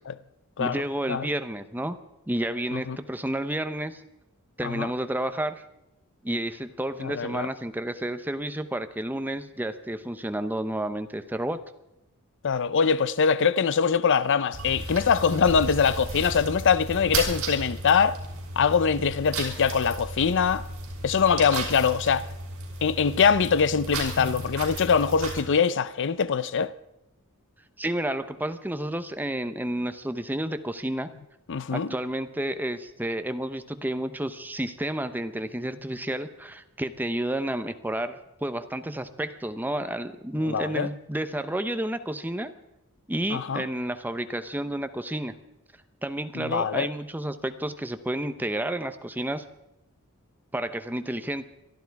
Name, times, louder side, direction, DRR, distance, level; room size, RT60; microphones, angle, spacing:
voice 1, 0.6-2.0 2.3-4.0 4.6-5.6 6.2-11.6 27.8-31.1 31.7-42.5 43.1-45.3 46.0-49.4 50.5-51.5, right 1 dB, 10° right, 0.8 m, -31 dB
voice 2, 7.0-7.5 12.4-18.2 18.6-20.6 21.0-22.3 22.8-26.7 31.5-31.9 40.5-40.9 43.3-43.6 46.3-46.9, left 6 dB, 60° left, 0.5 m, -23 dB
sound 1, 14.5-25.4, right 2 dB, 70° right, 5.5 m, -34 dB
23.0 x 13.0 x 4.7 m
head